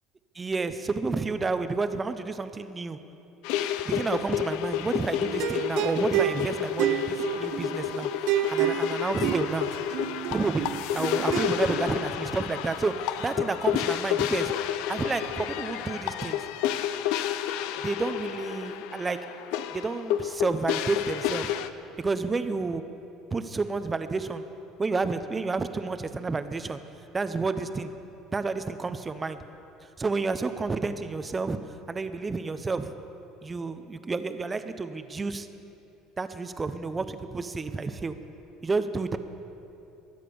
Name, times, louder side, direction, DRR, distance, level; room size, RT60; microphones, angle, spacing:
voice 1, 0.3-3.0 3.8-8.1 8.3-9.7 10.3-14.5 14.9-16.4 17.8-19.2 19.7-21.5 22.0-22.8 23.3-24.4 24.8-26.8 27.1-27.9 28.3-29.4 30.0-31.6 31.9-32.9 33.4-35.5 36.2-38.2 38.6-39.2, right 4 dB, 20° right, 10 dB, 0.8 m, -30 dB
sound 1, 3.4-21.7, left 11 dB, 75° left, 0.6 m, -30 dB
sound 2, 5.2-11.9, right 14 dB, 70° right, 0.5 m, -30 dB
22.5 x 8.3 x 7.0 m, 2.8 s
cardioid pair, 125°, 0 cm